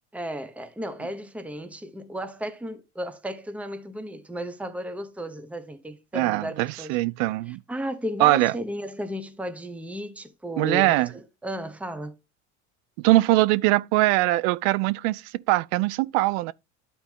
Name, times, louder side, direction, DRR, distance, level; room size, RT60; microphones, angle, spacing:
voice 1, 0.1-7.0 7.5-12.2, equal, 5° right, 1.0 m, -34 dB
voice 2, 6.1-7.6 8.2-8.5 10.6-11.1 13.0-16.5, right 19 dB, 70° right, 0.6 m, -22 dB
11.5 x 4.3 x 3.6 m
hypercardioid pair, 75°, 37 cm